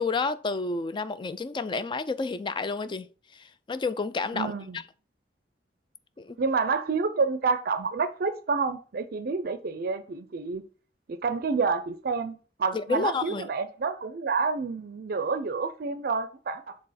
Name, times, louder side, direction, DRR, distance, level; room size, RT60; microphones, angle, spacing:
voice 1, 0.0-3.1 3.7-4.5 6.2-6.4 12.7-13.5, left 4 dB, 25° left, 0.4 m, -29 dB
voice 2, 4.3-4.8 6.4-10.6 11.1-16.8, right 4 dB, 60° right, 0.5 m, -29 dB
7.7 x 3.5 x 4.1 m
head